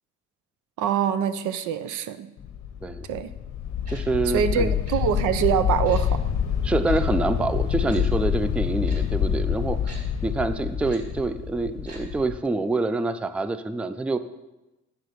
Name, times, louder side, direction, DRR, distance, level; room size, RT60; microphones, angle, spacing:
voice 1, 0.8-2.3 3.1-3.3 4.3-6.1, right 8 dB, 80° right, 11 dB, 0.6 m, -24 dB
sound 1, 2.4-12.4, left 8 dB, 75° left, 1.0 m, -27 dB
voice 2, 3.9-4.7 6.6-14.2, right 3 dB, 5° right, 12 dB, 0.3 m, -26 dB
Tick-tock, 3.9-4.0 4.9-5.0 5.9-6.0 6.9-7.0 7.9-8.0 8.9-9.0 9.9-10.0 10.9-11.0 11.9-12.0 12.3-12.4, right 2 dB, 55° right, 2.2 m, -45 dB
9.3 x 3.7 x 6.6 m, 1.0 s
cardioid pair, 90°, 30 cm